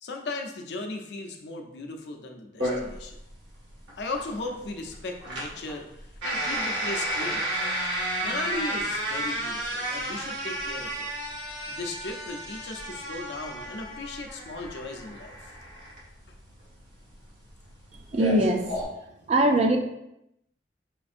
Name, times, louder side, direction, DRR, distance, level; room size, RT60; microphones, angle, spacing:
voice 1, 0.0-3.2 4.0-5.9 6.2-7.5 8.2-11.1 11.7-15.4, left 2 dB, 65° left, 3 dB, 0.5 m, -36 dB
sound 1, 2.6-18.8, right 1 dB, 85° right, 1.4 m, -32 dB
voice 2, 18.1-18.6 19.3-19.8, right 1 dB, 35° right, 3 dB, 0.4 m, -21 dB
5.2 x 2.5 x 2.5 m, 0.83 s
head